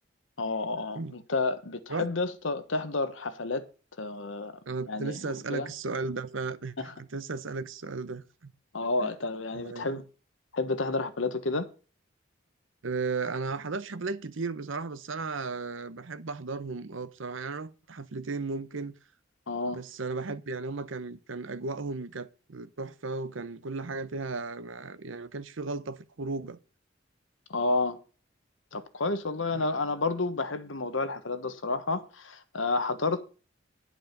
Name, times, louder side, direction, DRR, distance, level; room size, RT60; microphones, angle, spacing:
voice 1, 0.4-3.6 4.0-4.6 4.9-5.7 6.8-6.9 8.7-10.0 10.5-11.7 19.5-19.8 27.5-28.0 28.7-33.2, left 3 dB, 80° left, 1.3 m, -30 dB
voice 2, 4.6-8.5 9.0-9.1 9.5-10.0 12.8-18.9 19.7-26.6 29.5-29.7, right 4 dB, 85° right, 0.8 m, -35 dB
11.0 x 5.0 x 6.5 m
head